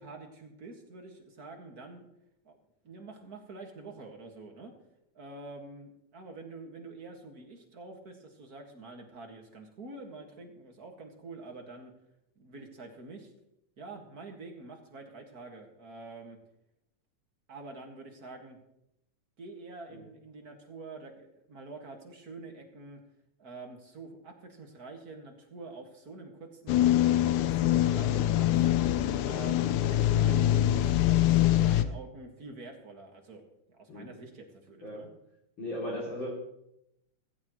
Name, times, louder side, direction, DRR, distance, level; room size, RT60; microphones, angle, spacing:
voice 1, 0.0-2.1 2.4-2.6 2.8-4.7 5.1-11.9 12.4-13.3 13.8-16.4 17.5-18.6 19.4-23.0 23.4-28.7 29.2-33.4 33.7-35.1, right 3 dB, 35° right, 2 dB, 2.0 m, -47 dB
sound 1, 26.7-31.8, left 12 dB, 90° left, 2.1 m, -24 dB
voice 2, 35.6-36.3, left 1 dB, 40° left, -5 dB, 3.5 m, -36 dB
16.0 x 15.5 x 3.1 m, 0.80 s
omnidirectional pair, 3.4 m